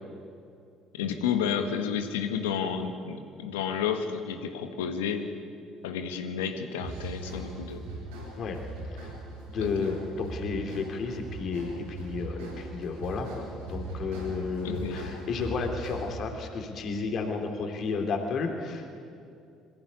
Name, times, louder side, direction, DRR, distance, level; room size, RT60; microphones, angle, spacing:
voice 1, 0.9-5.3 5.8-7.9 9.6-9.9 14.6-15.0, left 7 dB, 85° left, 7 dB, 1.6 m, -31 dB
sound 1, 6.8-16.3, right 2 dB, 85° right, 5.7 m, -39 dB
voice 2, 9.5-18.9, left 4 dB, 55° left, 3 dB, 3.0 m, -32 dB
22.0 x 15.0 x 9.9 m, 2.5 s
hypercardioid pair, 60°, 0 cm